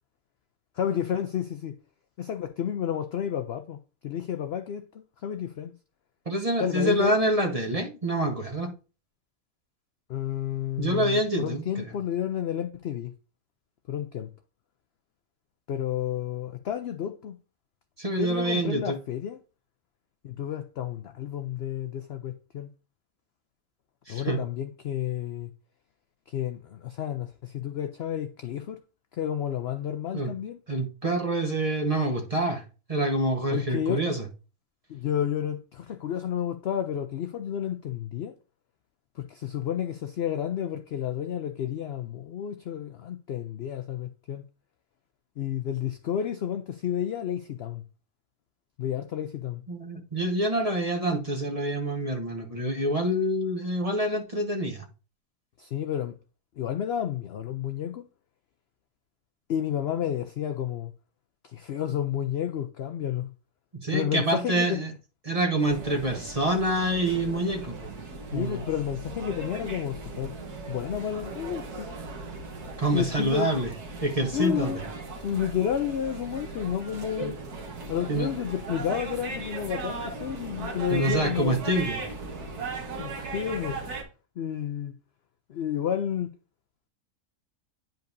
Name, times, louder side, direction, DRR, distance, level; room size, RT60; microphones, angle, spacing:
voice 1, 0.8-1.7 2.2-3.8 4.0-4.9 5.2-5.7 6.6-7.2 10.1-13.1 13.9-14.3 15.7-17.4 18.2-19.4 20.2-22.7 24.1-25.5 26.3-28.8 29.1-30.6 33.5-34.0 34.9-38.3 39.2-44.4 45.4-47.8 48.8-49.6 55.6-56.2 56.6-58.0 59.5-60.9 61.4-63.3 63.9-64.9 68.3-70.3 70.7-71.9 72.9-73.5 74.3-74.8 75.2-77.4 77.9-81.7 83.0-83.8 84.4-84.9 85.5-86.3, left 9 dB, 65° left, 0.6 m, -31 dB
voice 2, 6.3-8.7 10.8-11.9 18.0-19.0 24.1-24.4 30.1-30.3 30.7-32.6 32.9-34.3 49.7-54.8 63.8-64.9 65.2-67.9 68.3-68.6 72.8-73.7 74.0-74.7 77.2-77.3 78.1-78.3 80.9-82.0, right 1 dB, 25° right, 1.1 m, -26 dB
sound 1, 65.6-84.0, right 3 dB, 85° right, 1.9 m, -38 dB
10.5 x 5.2 x 2.6 m
omnidirectional pair, 1.6 m